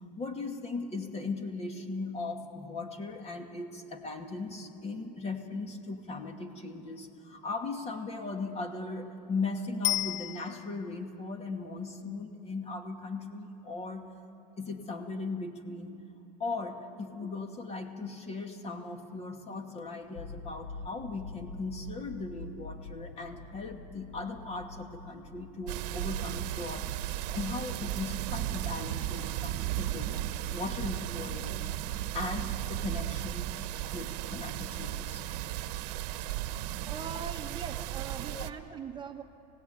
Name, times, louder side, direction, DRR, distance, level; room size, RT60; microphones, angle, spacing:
voice 1, 0.0-14.1 14.6-15.9 16.4-30.1 30.5-31.7 32.1-33.5 33.9-35.2 38.3-38.4, left 3 dB, 30° left, 5 dB, 2.4 m, -38 dB
Bicycle bell, 9.8-11.0 20.0-20.1, left 18 dB, 90° left, 0.5 m, -32 dB
sound 1, 20.1-30.0, left 3 dB, 70° left, 1.6 m, -47 dB
sound 2, 25.7-38.5, right 13 dB, 75° right, 1.1 m, -35 dB
voice 2, 36.9-39.2, right 6 dB, 20° right, 4 dB, 1.1 m, -41 dB
27.5 x 17.0 x 9.5 m, 2.9 s
supercardioid pair, 120°, 21 cm